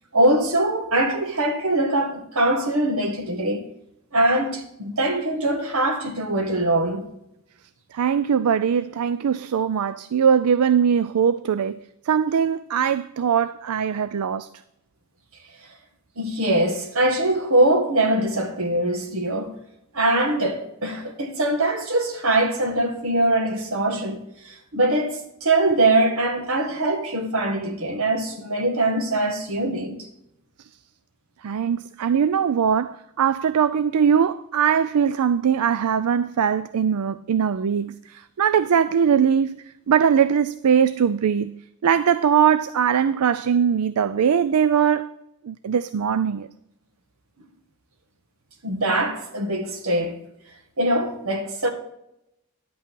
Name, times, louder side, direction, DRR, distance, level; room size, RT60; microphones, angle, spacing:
voice 1, 0.1-3.7 4.1-7.1 16.2-19.6 19.9-24.2 24.4-30.1 48.6-50.2 50.8-51.7, right 1 dB, 65° right, 1.9 m, -22 dB
voice 2, 7.9-11.8 12.1-14.5 31.4-45.1 45.4-46.5, right 7 dB, 85° right, 0.4 m, -21 dB
11.5 x 8.5 x 4.5 m
head